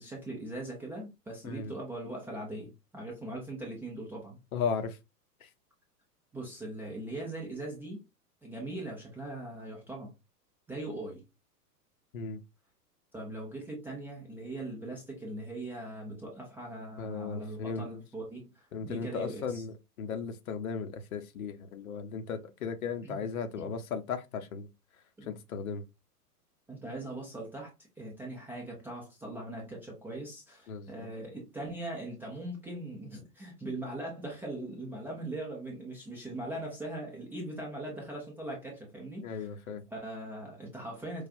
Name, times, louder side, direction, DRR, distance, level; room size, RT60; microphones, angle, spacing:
voice 1, 0.0-4.4 6.3-8.0 8.4-10.1 10.7-11.2 13.1-19.6 23.0-23.2 23.6-23.7 25.2-25.4 26.7-39.5 39.9-41.3, right 1 dB, 5° right, 0.4 m, -40 dB
voice 2, 4.5-5.0 5.4-5.5 12.1-12.4 17.0-17.9 18.7-24.7 25.2-25.8 30.7-31.1 39.2-39.8, left 5 dB, 60° left, 0.8 m, -36 dB
4.8 x 2.3 x 2.5 m
figure-of-eight pair, 100°, 48 cm